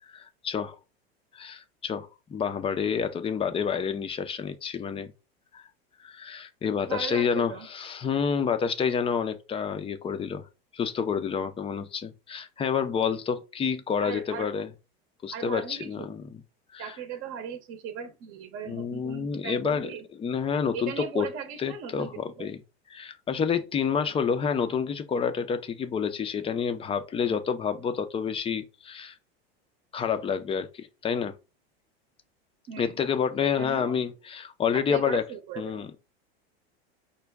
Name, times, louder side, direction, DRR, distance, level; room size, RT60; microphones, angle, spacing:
voice 1, 0.1-0.7 1.3-5.1 5.5-5.6 6.0-10.5 10.7-14.7 15.2-16.4 16.7-16.9 18.7-19.9 20.2-21.3 21.6-22.6 22.9-29.2 29.9-31.3 32.8-35.3 35.6-36.0, left 6 dB, 20° left, 0.4 m, -29 dB
voice 2, 6.9-7.7 14.0-14.5 15.3-16.1 16.8-20.0 20.7-22.5 32.7-33.0 33.4-34.0 34.7-35.8, right 7 dB, 45° right, 0.8 m, -38 dB
5.1 x 2.2 x 3.3 m
hypercardioid pair, 110°, 31 cm